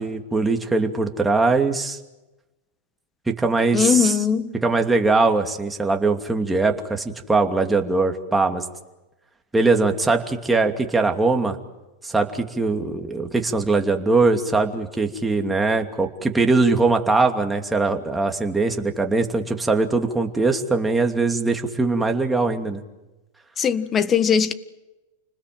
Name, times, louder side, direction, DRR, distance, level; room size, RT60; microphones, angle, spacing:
voice 1, 0.0-2.0 3.3-4.1 4.6-8.6 9.5-11.6 12.0-22.8, right 3 dB, 10° right, 2.7 m, -21 dB
voice 2, 3.7-4.5 23.6-24.5, left 7 dB, 25° left, 1.6 m, -20 dB
30.0 x 20.0 x 7.9 m
hypercardioid pair, 110°, 0 cm